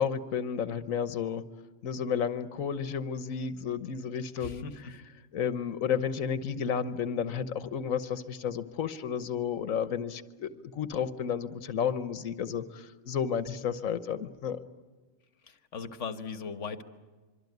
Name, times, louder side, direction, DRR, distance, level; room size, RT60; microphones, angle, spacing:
voice 1, 0.0-1.4 1.8-4.6 5.3-14.6, left 7 dB, 85° left, 12 dB, 1.5 m, -32 dB
voice 2, 4.4-5.0 15.4-16.8, left 5 dB, 65° left, 10 dB, 1.6 m, -39 dB
25.5 x 24.5 x 9.4 m, 1.3 s
omnidirectional pair, 1.4 m